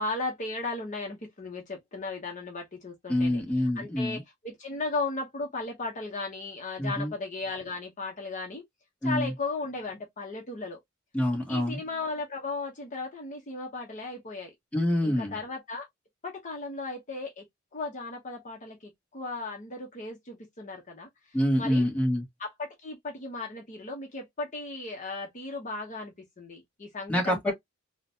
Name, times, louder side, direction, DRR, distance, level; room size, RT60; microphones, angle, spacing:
voice 1, 0.0-8.6 9.0-10.8 11.5-14.5 15.0-15.9 16.2-17.4 17.7-21.1 21.6-21.9 22.4-27.5, left 3 dB, 40° left, 0.8 m, -36 dB
voice 2, 3.1-4.2 6.8-7.1 9.0-9.3 11.1-11.8 14.7-15.4 21.3-22.2 27.1-27.5, left 1 dB, 5° left, 1.2 m, -26 dB
3.8 x 2.2 x 2.7 m
head